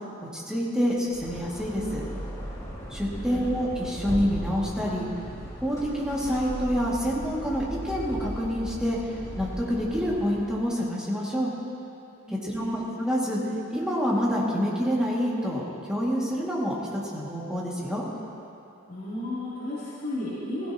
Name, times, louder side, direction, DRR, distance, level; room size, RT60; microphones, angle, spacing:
voice 1, 0.2-2.0 2.9-5.1 5.6-11.5 12.4-13.4 13.7-18.0, equal, 5° right, -6 dB, 2.1 m, -27 dB
sound 1, 1.0-10.5, equal, 15° left, 2.2 m, -37 dB
voice 2, 3.2-3.5 12.3-12.7 18.9-20.7, left 1 dB, 45° left, -14 dB, 3.0 m, -34 dB
16.5 x 15.5 x 2.9 m, 2.7 s
head